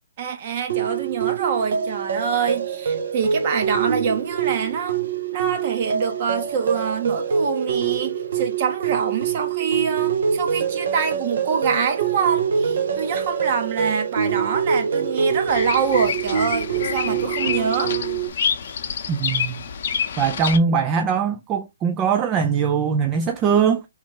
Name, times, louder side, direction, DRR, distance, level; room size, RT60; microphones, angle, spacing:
voice 1, 0.2-5.0 5.3-18.0, right 6 dB, 40° right, 1.0 m, -25 dB
sound 1, 0.7-18.3, right 7 dB, 65° right, 0.7 m, -25 dB
Bird vocalization bird call bird song, 15.5-20.6, left 7 dB, 50° left, 0.7 m, -27 dB
voice 2, 19.1-19.6 20.2-23.8, right 6 dB, 20° right, 0.3 m, -21 dB
3.2 x 3.1 x 4.5 m
hypercardioid pair, 155°, 0 cm